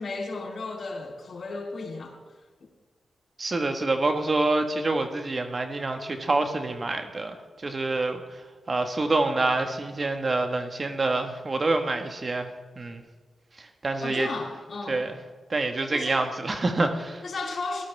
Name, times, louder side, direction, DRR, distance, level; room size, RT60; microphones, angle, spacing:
voice 1, 0.0-2.2 2.6-2.7 14.0-15.1 15.9-16.2 17.2-17.9, left 3 dB, 60° left, 0 dB, 3.2 m, -34 dB
voice 2, 3.4-8.2 8.7-13.0 13.6-14.3 14.9-15.1 15.5-17.2, right 2 dB, 45° right, 5 dB, 1.6 m, -27 dB
17.0 x 12.5 x 3.5 m, 1.3 s
supercardioid pair, 40°, 0 cm